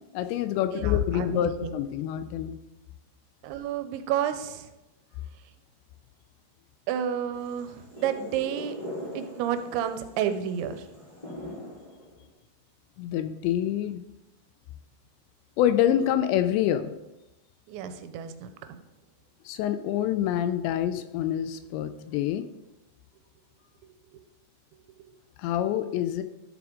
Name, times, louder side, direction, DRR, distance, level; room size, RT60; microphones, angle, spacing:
voice 1, 0.1-2.6 13.0-14.0 15.6-16.9 19.5-22.5 25.4-26.2, left 11 dB, 85° left, 10 dB, 2.6 m, -26 dB
voice 2, 0.7-1.7 3.4-4.7 6.9-8.8 9.1-10.9 17.7-18.8, right 9 dB, 85° right, 9 dB, 2.9 m, -31 dB
sound 1, 7.3-12.2, equal, 10° left, 3.0 m, -41 dB
12.0 x 7.2 x 3.7 m, 0.98 s
omnidirectional pair, 5.3 m